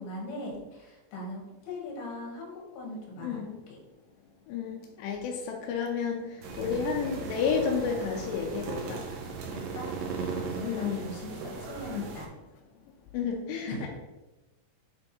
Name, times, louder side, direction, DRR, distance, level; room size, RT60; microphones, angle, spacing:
voice 1, 0.0-3.4 3.7-3.8 6.5-6.8 9.5-12.3 13.7-13.9, left 1 dB, 65° left, -2 dB, 3.3 m, -40 dB
voice 2, 3.2-3.6 4.5-9.0 10.6-11.0 11.9-12.1 13.1-13.9, left 6 dB, 85° left, 0 dB, 2.8 m, -31 dB
sound 1, 6.4-12.3, right 4 dB, 80° right, 3.0 m, -37 dB
7.6 x 3.5 x 4.1 m, 1.1 s
omnidirectional pair, 4.9 m